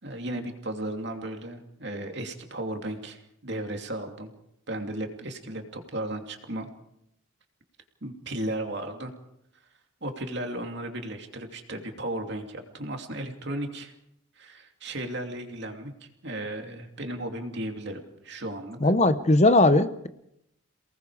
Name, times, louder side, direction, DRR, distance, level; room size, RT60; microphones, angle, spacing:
voice 1, 0.0-4.3 4.7-6.7 8.0-9.1 10.0-13.9 14.4-15.9 16.2-18.8, right 1 dB, 55° right, 4 dB, 2.8 m, -35 dB
voice 2, 18.8-20.1, left 2 dB, 35° left, 11 dB, 0.9 m, -19 dB
28.5 x 19.5 x 4.9 m, 0.77 s
head